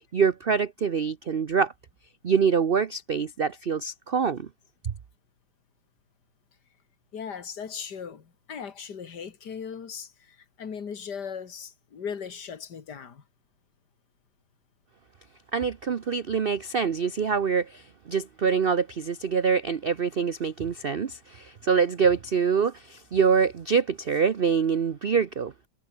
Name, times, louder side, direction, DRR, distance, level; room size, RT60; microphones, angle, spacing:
voice 1, 0.1-1.7 2.2-4.5 4.8-4.9 15.5-25.7, right 6 dB, 45° right, 0.8 m, -25 dB
voice 2, 7.1-13.2, left 7 dB, 65° left, 2.6 m, -38 dB
omnidirectional pair, 1.9 m